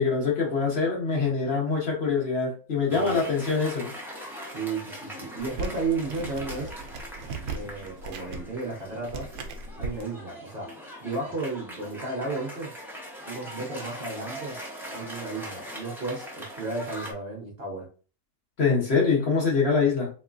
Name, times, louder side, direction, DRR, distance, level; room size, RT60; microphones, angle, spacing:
voice 1, 0.0-3.9 18.6-20.1, left 5 dB, 45° left, -3 dB, 1.1 m, -24 dB
Cheering / Applause, 2.9-17.1, equal, ahead, 0.5 m, -41 dB
voice 2, 2.9-3.2 4.4-6.7 7.5-9.3 9.8-10.7 11.0-12.7 13.2-14.6 14.9-17.9, right 3 dB, 45° right, -2 dB, 1.0 m, -33 dB
sound 1, 5.4-10.0, right 4 dB, 75° right, 1.0 m, -37 dB
3.5 x 3.1 x 2.4 m, 0.38 s
omnidirectional pair, 1.6 m